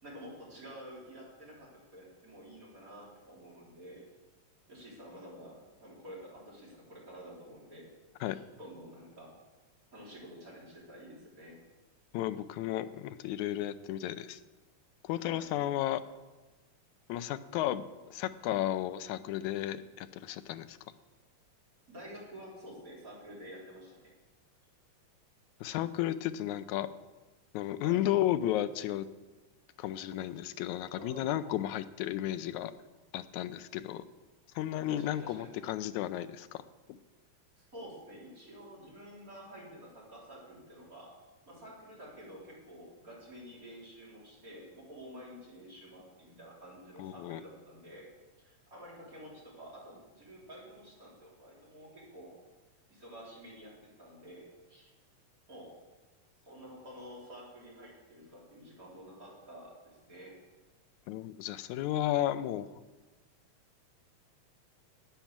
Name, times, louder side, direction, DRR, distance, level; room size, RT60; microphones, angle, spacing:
voice 1, 0.0-4.0 4.7-7.9 8.3-9.3 9.9-11.6 15.2-15.4 21.9-24.1 27.8-28.0 31.0-31.4 34.9-35.5 37.6-41.1 41.5-48.0 48.4-52.3 52.9-54.4 54.7-54.9 55.5-55.7 56.4-60.3, equal, 25° right, -6 dB, 4.4 m, -50 dB
voice 2, 12.1-14.4 15.0-16.0 17.1-17.8 18.1-20.8 25.6-26.9 27.5-29.1 29.8-32.7 33.1-34.0 34.6-36.6 36.9-37.0 47.0-47.4 61.1-62.7, left 13 dB, 80° left, 12 dB, 2.0 m, -33 dB
11.5 x 9.1 x 7.3 m, 1.2 s
omnidirectional pair, 3.4 m